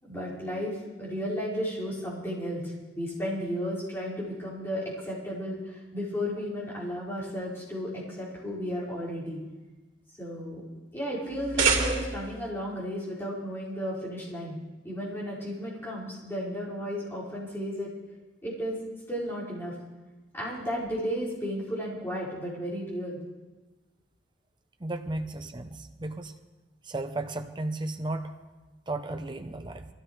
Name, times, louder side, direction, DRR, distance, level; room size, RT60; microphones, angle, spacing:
voice 1, 0.0-9.4 10.2-10.6 10.9-14.6 14.8-17.9 18.4-18.8 19.1-19.7 20.3-23.2, equal, 15° left, -8 dB, 5.1 m, -33 dB
sound 1, 11.3-12.4, right 5 dB, 90° right, 3.1 m, -27 dB
voice 2, 24.8-26.3 26.9-28.3 28.9-29.9, right 2 dB, 25° right, 7 dB, 0.6 m, -34 dB
22.5 x 15.5 x 3.2 m, 1.2 s
head